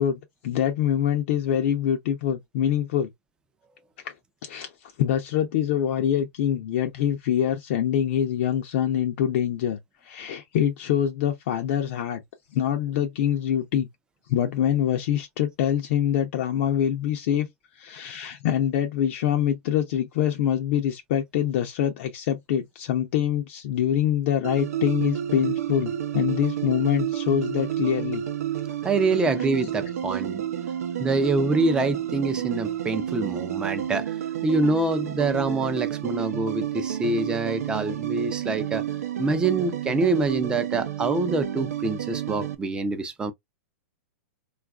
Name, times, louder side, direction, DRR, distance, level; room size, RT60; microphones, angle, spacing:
voice 1, 0.0-3.1 4.0-4.1 4.4-12.2 12.5-13.9 14.3-17.5 17.8-28.2 29.2-29.5, left 10 dB, 55° left, 0.6 m, -25 dB
sound 1, 24.4-42.6, right 10 dB, 90° right, 0.6 m, -30 dB
voice 2, 28.8-30.5 31.0-34.2 34.4-38.8 39.2-43.3, right 3 dB, 10° right, 0.4 m, -25 dB
3.8 x 2.4 x 2.3 m
supercardioid pair, 155°, 8 cm